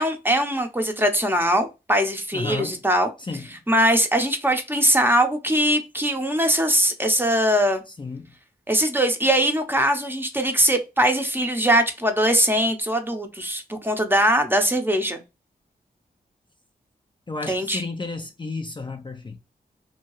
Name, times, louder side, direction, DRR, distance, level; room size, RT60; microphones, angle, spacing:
voice 1, 0.0-3.1 3.7-7.8 8.7-15.2 17.5-17.8, equal, 10° right, 0.6 m, -21 dB
voice 2, 2.3-2.8 3.2-3.5 7.9-8.3 17.3-19.4, left 3 dB, 30° left, 0.4 m, -32 dB
2.7 x 2.2 x 3.0 m
cardioid pair, 70°, 17 cm